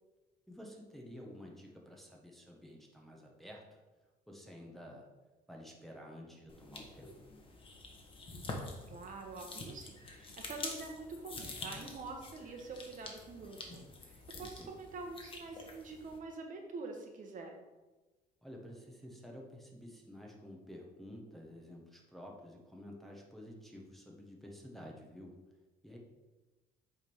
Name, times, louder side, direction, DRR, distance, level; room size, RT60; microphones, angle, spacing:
voice 1, 0.5-3.8 4.3-5.1 5.5-7.2 14.4-14.7 18.4-25.3 25.8-26.0, equal, ahead, -1 dB, 1.2 m, -51 dB
sound 1, 6.5-16.2, left 2 dB, 30° left, 1.3 m, -47 dB
voice 2, 8.9-17.6, right 3 dB, 50° right, 3 dB, 1.1 m, -46 dB
8.1 x 3.7 x 4.6 m, 1.2 s
cardioid pair, 110°, 17 cm